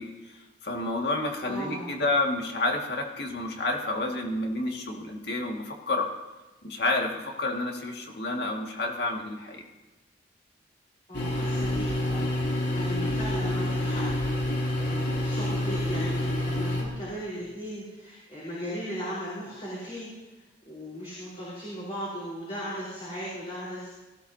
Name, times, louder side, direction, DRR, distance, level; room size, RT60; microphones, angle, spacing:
voice 1, 0.0-6.1 6.6-9.7, left 2 dB, 65° left, 1 dB, 2.0 m, -30 dB
voice 2, 1.4-1.9 11.1-14.1 14.8-23.9, equal, 35° left, -8 dB, 4.3 m, -37 dB
sound 1, 11.1-16.8, left 1 dB, 80° left, 3.3 m, -28 dB
18.0 x 15.5 x 2.8 m, 1.2 s
head